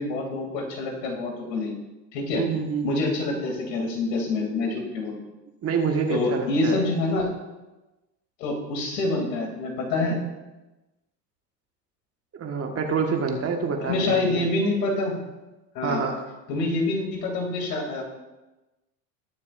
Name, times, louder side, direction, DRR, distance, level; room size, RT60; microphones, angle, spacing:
voice 1, 0.0-1.8 2.1-2.4 2.8-5.2 6.1-7.3 8.4-10.1 13.8-15.1 15.7-16.0 16.5-18.0, left 2 dB, 75° left, 0 dB, 2.9 m, -26 dB
voice 2, 2.3-3.1 5.6-6.8 12.3-14.5 15.8-16.2, right 5 dB, 30° right, 3 dB, 1.6 m, -27 dB
20.0 x 6.9 x 2.6 m, 1.1 s
hypercardioid pair, 100°, 50 cm